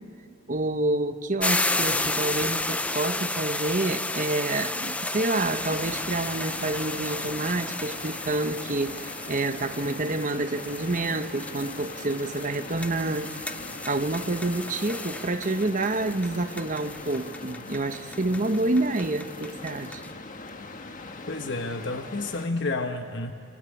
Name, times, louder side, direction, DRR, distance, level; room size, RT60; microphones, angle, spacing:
voice 1, 0.5-13.3 13.9-20.0, right 2 dB, 40° right, 8 dB, 1.1 m, -28 dB
sound 1, 1.4-20.1, left 2 dB, 5° left, 0.6 m, -33 dB
sound 2, 5.3-22.5, left 3 dB, 40° left, 1.5 m, -41 dB
voice 2, 21.3-23.3, left 2 dB, 65° left, 6 dB, 1.4 m, -30 dB
27.5 x 24.5 x 8.7 m, 2.5 s
head